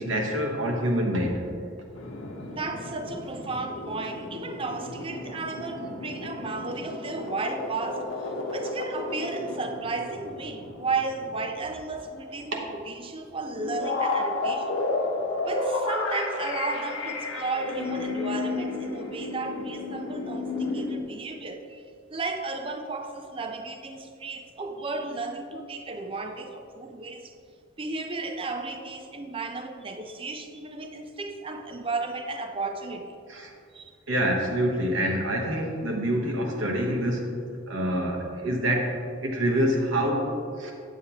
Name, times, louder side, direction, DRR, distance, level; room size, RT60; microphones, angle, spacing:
voice 1, 0.0-1.5 12.5-12.6 33.3-33.5 34.1-37.3 37.7-40.3 40.6-40.7, equal, 65° right, 0 dB, 1.1 m, -26 dB
sound 1, 1.9-12.1 12.4-12.5 13.4-21.0, left 2 dB, 80° left, 1.0 m, -32 dB
voice 2, 2.5-14.7 15.4-21.8 22.1-27.3 27.8-33.2 33.7-33.9, right 3 dB, 25° right, 6 dB, 0.5 m, -34 dB
9.5 x 7.3 x 2.9 m, 2.4 s
head